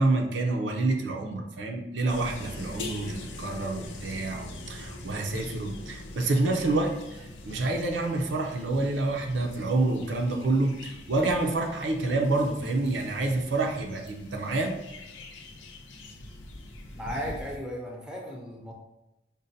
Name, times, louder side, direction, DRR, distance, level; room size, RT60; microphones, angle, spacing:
voice 1, 0.0-14.7, right 2 dB, 80° right, 2 dB, 0.5 m, -28 dB
sound 1, 2.1-17.6, left 2 dB, 90° left, 0.5 m, -43 dB
voice 2, 16.9-18.7, equal, 5° right, -2 dB, 0.5 m, -36 dB
5.2 x 2.1 x 2.6 m, 0.92 s
head